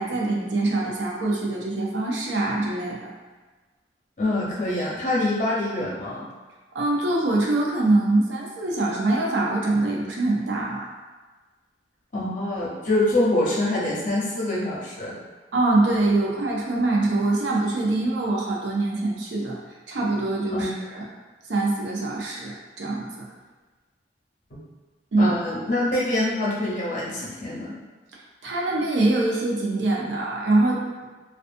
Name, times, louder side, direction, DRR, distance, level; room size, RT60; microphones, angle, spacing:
voice 1, 0.0-3.1 6.7-10.9 15.5-19.6 19.9-21.1 21.5-23.2 25.1-25.4 28.4-30.8, right 2 dB, 75° right, -2 dB, 0.5 m, -24 dB
voice 2, 4.2-6.3 12.1-15.1 20.5-20.8 24.5-24.6 25.2-27.7, left 1 dB, 45° left, -6 dB, 0.7 m, -25 dB
2.5 x 2.3 x 2.5 m, 1.3 s
head